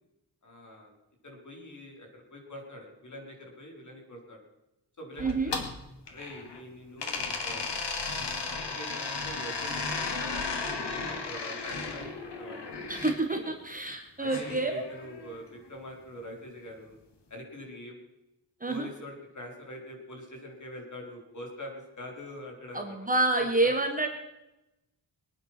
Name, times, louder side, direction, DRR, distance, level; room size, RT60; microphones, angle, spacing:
voice 1, 0.4-0.9 1.2-4.4 5.0-5.5 6.1-7.8 8.5-13.0 13.3-13.5 14.2-17.0 17.3-18.0 18.7-23.0 23.4-23.8, left 1 dB, 45° left, 1 dB, 4.6 m, -44 dB
sound 1, 5.2-6.6 7.0-13.2 14.2-15.4, left 4 dB, 90° left, 2.4 m, -35 dB
voice 2, 5.2-5.6 12.9-14.8 18.6-18.9 22.7-24.1, right 2 dB, 20° right, 4 dB, 1.6 m, -28 dB
23.5 x 9.6 x 6.1 m, 0.92 s
wide cardioid pair, 175°, 41 cm